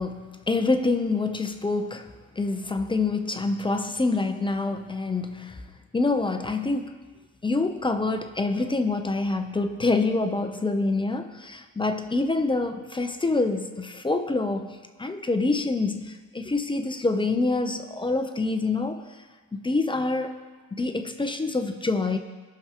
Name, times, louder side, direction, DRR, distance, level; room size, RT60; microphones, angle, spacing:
voice 1, 0.0-2.1 2.4-5.7 5.9-6.9 7.4-19.0 19.5-20.3 20.7-22.2, left 3 dB, 15° left, 6 dB, 0.7 m, -26 dB
17.0 x 6.0 x 3.0 m, 1.4 s
cardioid pair, 90°, 30 cm